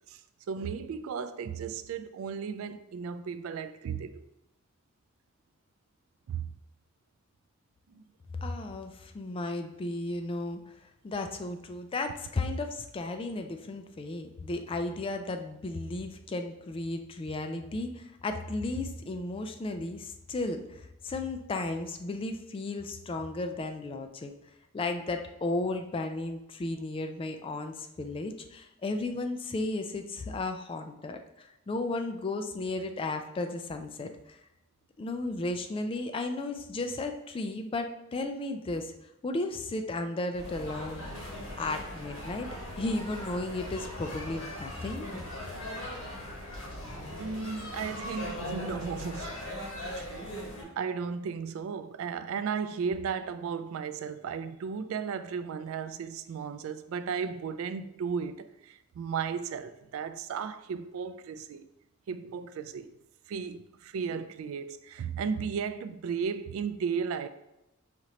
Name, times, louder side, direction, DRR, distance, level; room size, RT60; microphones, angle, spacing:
voice 1, 0.5-4.2 6.3-6.5 7.9-8.1 47.2-49.3 50.8-61.7 62.1-62.9 63.3-67.3, right 6 dB, 85° right, 0.3 m, -35 dB
voice 2, 8.4-10.7 11.0-24.3 24.7-34.4 35.0-38.9 39.2-41.1 41.6-42.5 42.8-45.1, left 2 dB, 25° left, 0.3 m, -34 dB
sound 1, 40.3-50.6, left 1 dB, 85° left, 1.3 m, -39 dB
5.0 x 3.0 x 2.8 m
head